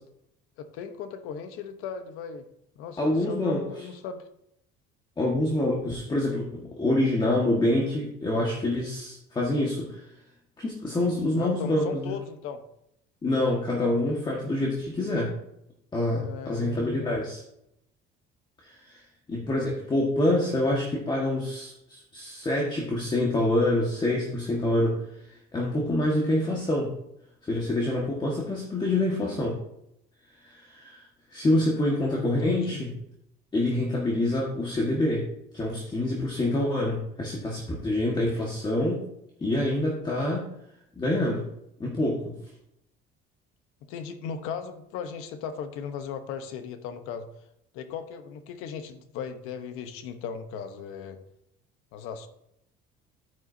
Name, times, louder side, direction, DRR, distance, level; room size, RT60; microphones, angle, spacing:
voice 1, 0.6-2.4 2.8-4.2 11.4-12.6 16.1-17.2 31.9-32.8 43.9-47.3 47.7-51.2 51.9-52.3, left 7 dB, 90° left, 9 dB, 1.0 m, -37 dB
voice 2, 3.0-3.6 5.2-10.0 10.6-12.1 13.2-15.3 15.9-17.4 18.6-19.0 19.3-25.0 25.3-26.9 27.4-29.6 30.4-31.0 31.3-32.9 33.5-35.3 35.5-39.0 39.4-40.4 41.0-41.5 41.8-42.3, left 1 dB, 20° left, -2 dB, 1.7 m, -26 dB
9.7 x 9.3 x 2.8 m, 0.80 s
cardioid pair, 140°, 21 cm